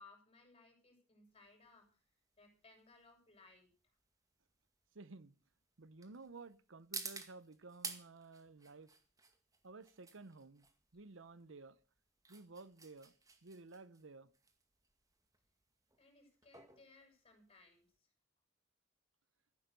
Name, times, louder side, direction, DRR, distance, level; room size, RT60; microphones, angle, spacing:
voice 1, 0.0-2.0 2.4-3.7 16.0-18.1, left 3 dB, 30° left, 7.9 m, -63 dB
sound 1, 1.3-18.0, right 4 dB, 20° right, 2.0 m, -53 dB
voice 2, 4.9-5.3 5.8-8.9 9.6-10.7 10.9-11.8 12.3-13.1 13.4-14.3, right 3 dB, 80° right, 0.9 m, -54 dB
14.5 x 11.5 x 6.9 m
head